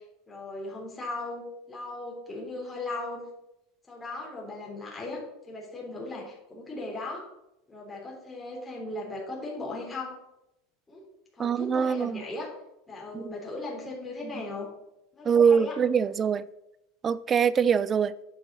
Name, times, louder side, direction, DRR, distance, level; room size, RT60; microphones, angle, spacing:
voice 1, 0.0-3.3 3.9-7.2 7.7-10.2 10.9-11.1 11.4-12.5 12.9-14.7 15.1-15.8, left 2 dB, 15° left, -3 dB, 3.5 m, -37 dB
voice 2, 11.4-12.2 13.1-13.3 15.2-16.5 17.0-18.1, right 7 dB, 25° right, 18 dB, 0.5 m, -23 dB
9.8 x 7.0 x 6.2 m, 0.87 s
supercardioid pair, 130°, 0 cm